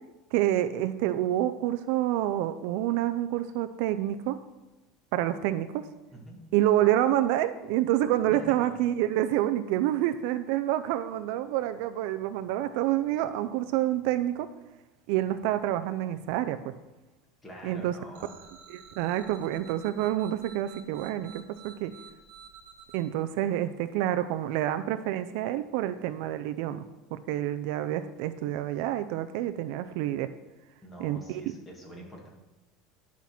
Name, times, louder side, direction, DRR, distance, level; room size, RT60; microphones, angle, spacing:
voice 1, 0.3-4.4 5.1-5.8 6.5-14.5 15.1-16.7 17.6-17.9 18.7-21.9 22.9-26.8 27.1-30.3 31.0-31.4, right 13 dB, 55° right, 11 dB, 0.4 m, -28 dB
voice 2, 8.3-8.7 17.4-18.3 30.8-32.3, equal, 10° left, -1 dB, 1.8 m, -45 dB
sound 1, 18.1-23.0, right 7 dB, 80° right, 1.3 m, -50 dB
10.5 x 5.8 x 5.9 m, 1.0 s
cardioid pair, 175°, 0 cm